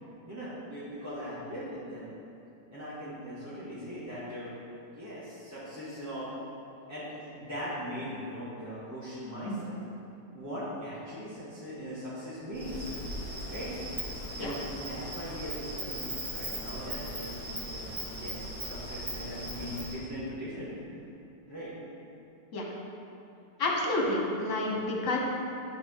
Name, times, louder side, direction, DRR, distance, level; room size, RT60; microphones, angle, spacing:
voice 1, 0.2-2.1 2.7-4.5 4.9-6.3 6.9-9.8 10.3-12.9 13.5-13.7 14.4-20.8 21.5-21.7, equal, 10° right, -11 dB, 1.5 m, -40 dB
Insect, 12.5-19.9, right 1 dB, 30° right, 2.1 m, -38 dB
voice 2, 23.6-25.2, left 2 dB, 50° left, -1 dB, 1.4 m, -29 dB
10.0 x 3.5 x 6.5 m, 2.7 s
omnidirectional pair, 1.9 m